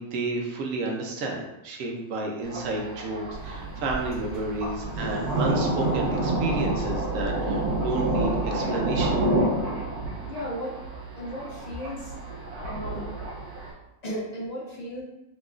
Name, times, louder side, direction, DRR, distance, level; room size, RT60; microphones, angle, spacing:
voice 1, 0.0-9.2, right 2 dB, 65° right, 0 dB, 0.9 m, -31 dB
Thunder, 2.4-13.7, right 1 dB, 85° right, 1.2 m, -29 dB
Microwave oven, 3.3-8.5, right 5 dB, 5° left, 1.3 m, -36 dB
voice 2, 10.3-10.8 11.2-12.1 12.6-13.1 14.0-15.0, equal, 50° left, -4 dB, 0.4 m, -35 dB
3.8 x 2.9 x 2.4 m, 0.93 s
omnidirectional pair, 1.6 m